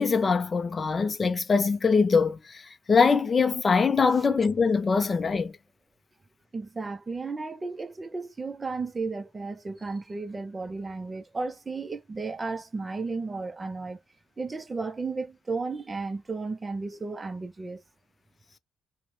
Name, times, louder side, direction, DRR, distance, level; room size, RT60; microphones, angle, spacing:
voice 1, 0.0-2.4 2.9-5.5, left 5 dB, 35° left, 0.4 m, -23 dB
voice 2, 6.5-14.0 14.4-17.8, right 3 dB, 25° right, 0.4 m, -34 dB
2.5 x 2.0 x 3.1 m
cardioid pair, 90°, 0 cm